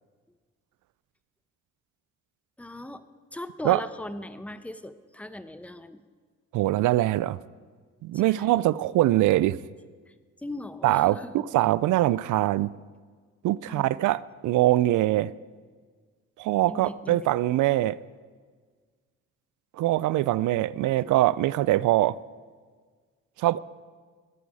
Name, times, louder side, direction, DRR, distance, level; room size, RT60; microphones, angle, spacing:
voice 1, 2.6-3.0 3.3-6.0 8.1-8.5 10.1-11.4 13.6-14.2 16.7-17.3, left 1 dB, 5° left, 0.8 m, -39 dB
voice 2, 6.5-7.4 8.0-9.6 10.8-12.7 13.4-15.3 16.4-18.0 19.8-22.2 23.4-23.6, right 15 dB, 80° right, 0.5 m, -23 dB
21.0 x 8.4 x 4.9 m
cardioid pair, 90°, 30 cm